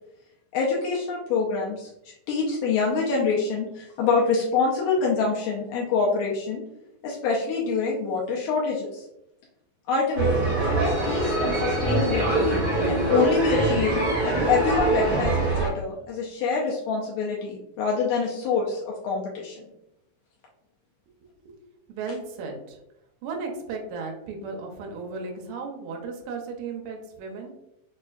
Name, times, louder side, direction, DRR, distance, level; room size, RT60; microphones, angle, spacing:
voice 1, 0.5-6.6 7.0-9.0 9.9-10.5 11.0-13.9 14.2-19.6, left 4 dB, 85° left, -3 dB, 1.6 m, -26 dB
sound 1, 10.1-15.7, right 2 dB, 65° right, 0.8 m, -23 dB
sound 2, 10.8-15.7, right 1 dB, 50° left, 1.8 m, -43 dB
voice 2, 21.9-22.8 23.2-27.5, right 4 dB, 85° right, 1 dB, 1.6 m, -35 dB
5.4 x 2.5 x 2.3 m, 0.84 s
omnidirectional pair, 4.1 m